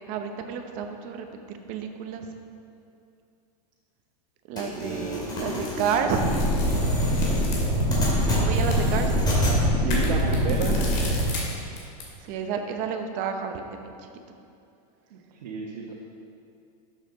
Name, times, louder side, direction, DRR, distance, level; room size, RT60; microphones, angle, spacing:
voice 1, 0.1-2.3 4.5-6.4 8.3-9.2 12.2-14.1, right 6 dB, 40° right, 5 dB, 0.8 m, -30 dB
sound 1, 4.6-9.6, left 1 dB, 20° left, 2.5 m, -29 dB
sound 2, 5.2-12.1, left 3 dB, 45° left, 2.4 m, -39 dB
sound 3, 6.1-11.2, equal, 15° right, 1.9 m, -24 dB
voice 2, 7.8-8.5 9.7-10.8 15.1-15.9, right 4 dB, 90° right, -3 dB, 1.3 m, -33 dB
11.5 x 7.5 x 4.0 m, 2.6 s
supercardioid pair, 160°, 21 cm